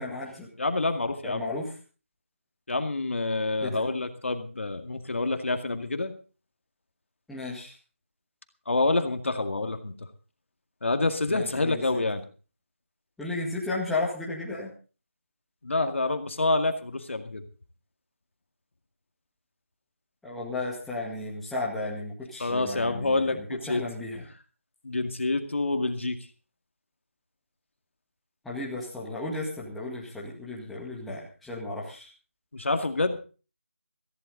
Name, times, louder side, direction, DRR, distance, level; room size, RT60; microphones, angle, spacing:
voice 1, 0.0-0.5 1.2-1.7 3.6-3.8 7.3-7.7 11.3-12.0 13.2-14.7 20.2-24.2 28.4-32.1, left 2 dB, ahead, -6 dB, 2.0 m, -34 dB
voice 2, 0.6-1.5 2.7-6.1 8.7-9.9 10.8-12.2 15.6-17.4 22.4-23.8 24.8-26.3 32.5-33.2, left 2 dB, 60° left, 7 dB, 2.0 m, -27 dB
16.5 x 15.0 x 3.9 m, 0.36 s
figure-of-eight pair, 165°, 8 cm